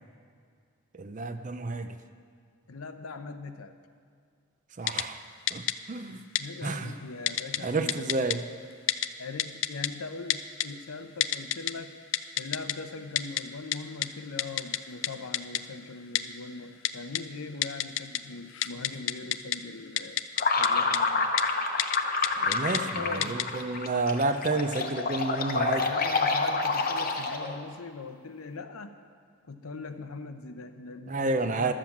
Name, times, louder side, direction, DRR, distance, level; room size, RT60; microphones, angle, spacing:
voice 1, 0.9-2.0 4.8-6.2 6.6-7.0 7.6-8.4 22.4-25.9 31.1-31.7, right 3 dB, 35° right, 8 dB, 0.5 m, -30 dB
voice 2, 2.7-3.8 6.4-8.4 9.2-12.0 12.4-20.2 20.6-21.3 22.7-23.4 25.8-29.0 29.5-31.7, left 3 dB, 90° left, 8 dB, 0.8 m, -41 dB
Typing, 4.9-5.0 5.5-5.7 6.4-6.5 7.3-7.6 7.9-8.4 8.9-9.1 9.4-9.9 10.3-10.7 11.2-11.7 12.1-12.7 13.2-13.4 13.7-13.8 14.0-14.1 14.4-14.8 15.0-15.1 15.3-15.6 16.1-16.2 16.8-17.2 17.6-18.2 18.5-19.6 20.0-20.7 20.9-21.0 21.4-21.5 21.8-22.0 22.2-22.8 23.2-23.4, left 13 dB, 60° left, 0.4 m, -27 dB
sound 1, 20.4-27.6, left 3 dB, 45° left, 0.9 m, -28 dB
12.5 x 7.5 x 7.2 m, 2.2 s
head